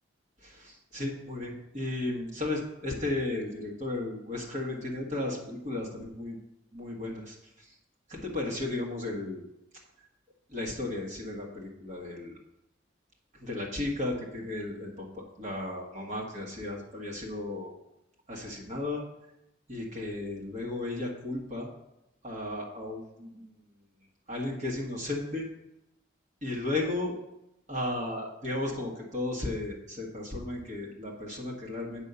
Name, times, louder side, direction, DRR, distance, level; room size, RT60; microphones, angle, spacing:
voice 1, 0.4-6.4 6.7-7.8 8.1-9.4 10.5-12.4 13.3-17.7 18.3-19.0 19.7-21.7 22.2-23.6 24.3-25.5 26.4-27.2 27.7-32.0, left 2 dB, 40° right, -1 dB, 1.6 m, -34 dB
8.1 x 5.5 x 6.8 m, 0.87 s
head